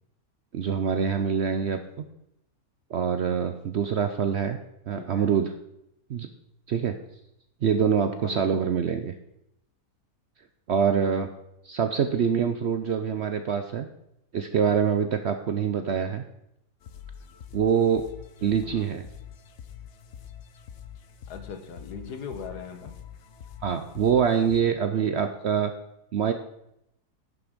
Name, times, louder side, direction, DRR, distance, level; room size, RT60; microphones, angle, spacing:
voice 1, 0.5-1.8 2.9-4.6 4.9-5.5 6.1-6.3 6.7-7.0 7.6-9.1 10.7-11.3 11.6-13.9 14.3-16.2 17.5-18.0 18.4-19.0 23.6-25.7 26.1-26.3, right 7 dB, 65° right, 7 dB, 0.7 m, -25 dB
voice 2, 4.9-5.3 8.2-8.6 11.8-12.4 18.6-18.9 21.3-23.0, left 6 dB, 85° left, 7 dB, 1.6 m, -40 dB
sound 1, 16.8-24.6, left 8 dB, 60° left, 0.8 m, -45 dB
11.0 x 6.1 x 5.1 m, 0.80 s
omnidirectional pair, 1.7 m